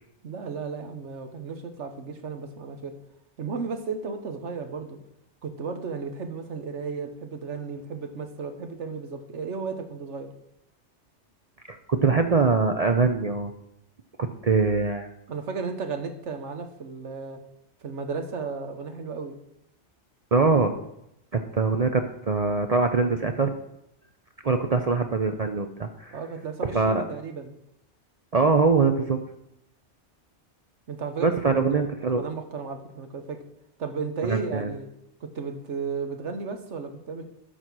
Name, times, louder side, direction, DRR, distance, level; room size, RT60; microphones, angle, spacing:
voice 1, 0.2-2.9 3.4-5.0 5.4-10.3 15.3-17.4 17.8-19.3 26.1-27.5 30.9-31.3 31.5-31.8 32.2-33.4 33.8-34.9 35.2-37.2, right 5 dB, 85° right, 6 dB, 1.4 m, -34 dB
voice 2, 11.7-13.5 14.2-15.1 20.3-20.7 21.3-23.5 24.4-26.1 26.7-27.0 28.3-29.2 31.2-32.2 34.3-34.8, right 4 dB, 45° right, 6 dB, 0.6 m, -23 dB
12.5 x 4.3 x 6.1 m, 0.80 s
omnidirectional pair, 1.2 m